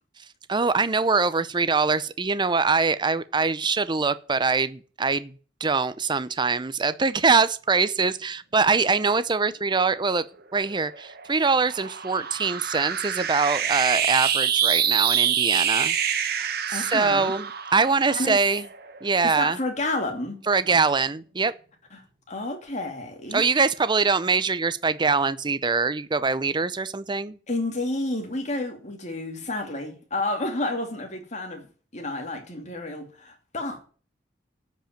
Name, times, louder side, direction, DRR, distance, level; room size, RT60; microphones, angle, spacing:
voice 1, 0.5-5.3 5.6-10.2 10.5-15.9 16.2-17.5 17.7-18.6 19.0-19.6 20.5-21.5 23.3-27.4, right 4 dB, 25° right, 0.6 m, -23 dB
sound 1, 10.6-19.3, right 8 dB, 60° right, 1.5 m, -26 dB
voice 2, 16.7-17.3 18.1-18.4 19.2-20.4 21.9-23.4 27.5-31.7 31.9-33.8, left 2 dB, 40° left, 2.6 m, -30 dB
11.5 x 5.4 x 8.9 m
head